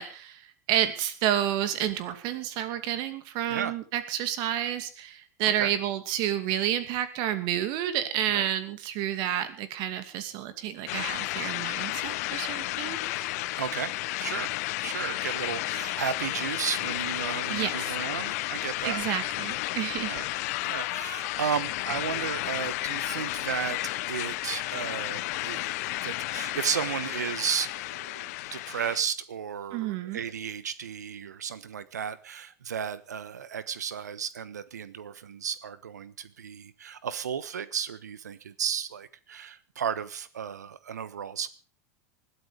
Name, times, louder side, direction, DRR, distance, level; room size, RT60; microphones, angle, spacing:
voice 1, 0.0-13.3 17.5-17.9 18.8-20.2 29.7-30.2, right 11 dB, 55° right, 11 dB, 2.6 m, -30 dB
sound 1, 10.9-29.0, left 19 dB, 65° left, 0.8 m, -32 dB
voice 2, 13.6-13.9 14.2-14.5 14.8-19.0 20.0-20.3 20.6-23.8 24.1-41.5, right 7 dB, 85° right, 17 dB, 1.2 m, -34 dB
20.5 x 12.5 x 5.1 m, 0.38 s
hypercardioid pair, 95°, 9 cm